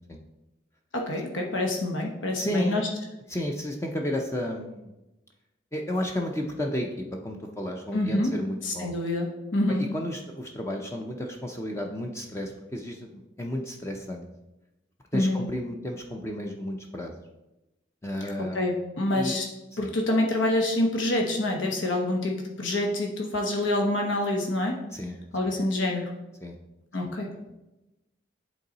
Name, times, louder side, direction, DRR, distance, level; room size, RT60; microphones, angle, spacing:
voice 1, 0.9-2.9 7.9-8.3 8.6-9.8 15.1-15.4 18.2-19.5 19.8-24.8 25.3-26.1 26.9-27.3, left 1 dB, 85° left, 1 dB, 1.0 m, -27 dB
voice 2, 2.4-2.8 3.3-4.9 5.7-9.0 9.7-14.3 15.1-17.1 18.0-18.6 19.1-19.4 19.8-19.9 24.9-25.2 25.4-25.5 26.4-26.6, left 1 dB, 15° left, 2 dB, 0.5 m, -32 dB
8.1 x 3.8 x 4.0 m, 0.97 s
head